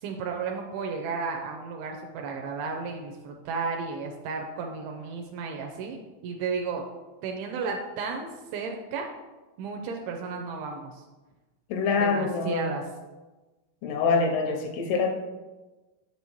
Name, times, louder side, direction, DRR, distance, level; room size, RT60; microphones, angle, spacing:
voice 1, 0.0-6.0 6.2-6.8 7.2-9.1 9.6-11.0 12.0-12.8, right 5 dB, 80° right, 2 dB, 2.4 m, -33 dB
voice 2, 11.7-12.7 13.8-15.1, left 4 dB, 85° left, 3 dB, 2.8 m, -25 dB
6.9 x 6.3 x 3.0 m, 1.2 s
omnidirectional pair, 4.5 m